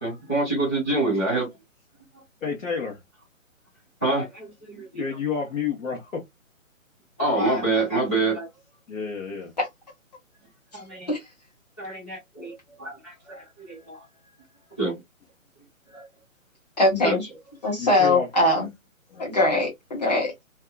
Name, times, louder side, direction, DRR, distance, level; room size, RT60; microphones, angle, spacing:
voice 1, 0.0-1.5 4.0-5.0 7.2-8.5 10.7-11.1 11.8-14.1 14.8-15.0 15.9-16.0 17.0-17.2, right 2 dB, 10° left, 0.9 m, -26 dB
voice 2, 2.4-3.0 4.9-6.2 8.9-9.5 17.8-18.7 19.1-19.3, left 6 dB, 70° left, 1.1 m, -30 dB
voice 3, 16.8-17.2 17.6-18.7 19.2-20.3, left 2 dB, 30° left, 1.1 m, -21 dB
2.7 x 2.3 x 2.3 m
hypercardioid pair, 175°, 41 cm